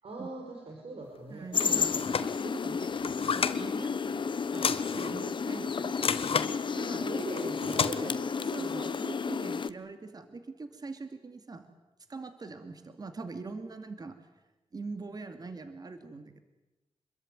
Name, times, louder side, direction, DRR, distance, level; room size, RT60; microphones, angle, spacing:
voice 1, 0.0-1.9 6.9-8.8, right 2 dB, 75° right, 1 dB, 5.7 m, -41 dB
voice 2, 1.3-7.1 8.4-11.7 12.1-14.3 14.7-16.4, right 3 dB, 40° right, 8 dB, 2.4 m, -43 dB
sound 1, 1.5-9.7, left 5 dB, 55° left, 1.0 m, -32 dB
sound 2, 1.6-2.3 2.9-3.6 4.5-5.2 6.0-6.5 7.4-7.9, left 6 dB, 70° left, 1.4 m, -31 dB
28.0 x 22.0 x 9.5 m, 1.0 s
wide cardioid pair, 135°, 10 cm